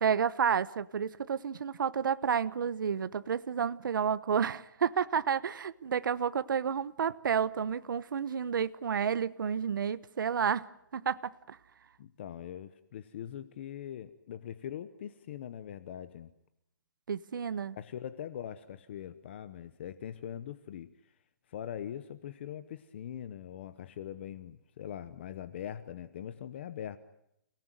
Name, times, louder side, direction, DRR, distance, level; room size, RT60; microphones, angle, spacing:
voice 1, 0.0-10.7 10.9-11.6 17.1-17.8, right 7 dB, 75° right, 1.0 m, -30 dB
voice 2, 12.0-16.3 17.7-20.9 21.5-27.0, left 10 dB, 35° left, 0.9 m, -42 dB
29.0 x 18.0 x 9.2 m
hypercardioid pair, 175°, 11 cm